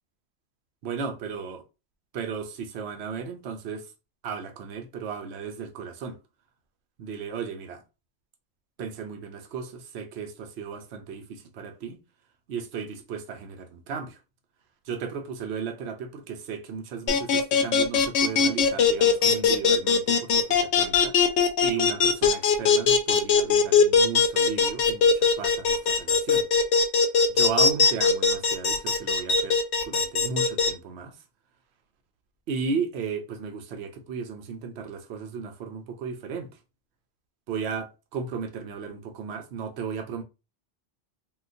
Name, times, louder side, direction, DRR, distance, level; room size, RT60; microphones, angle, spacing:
voice 1, 0.8-1.6 2.1-3.9 4.2-6.2 7.0-7.8 8.8-12.0 12.5-14.2 14.9-21.2 21.6-26.4 27.3-29.6 29.8-31.1 32.5-36.5 37.5-40.2, right 5 dB, 75° right, 0.9 m, -35 dB
sound 1, 17.1-30.7, left 6 dB, 90° left, 0.9 m, -20 dB
3.7 x 2.4 x 2.6 m
omnidirectional pair, 1.1 m